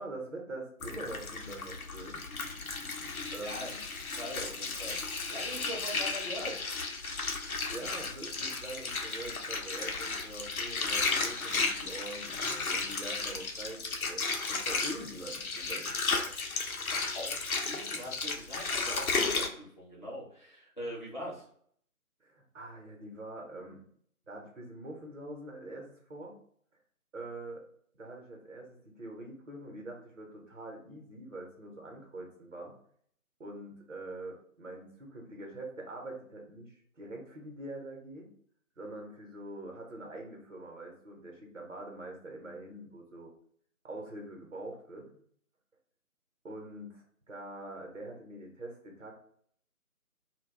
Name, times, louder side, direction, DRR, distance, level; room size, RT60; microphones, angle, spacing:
voice 1, 0.0-2.3 3.3-3.8 7.4-14.2 14.5-16.2 22.2-23.8 24.3-26.4 27.1-27.6 27.9-32.7 33.4-38.3 38.8-43.3 43.8-45.1 46.4-49.1, right 1 dB, 60° right, 0 dB, 0.9 m, -44 dB
Water, 0.8-19.5, left 4 dB, 70° left, 0.6 m, -34 dB
voice 2, 3.4-3.7 4.1-6.6 17.1-21.5, equal, 35° left, -6 dB, 0.7 m, -42 dB
2.2 x 2.2 x 3.4 m, 0.62 s
figure-of-eight pair, 160°, 44 cm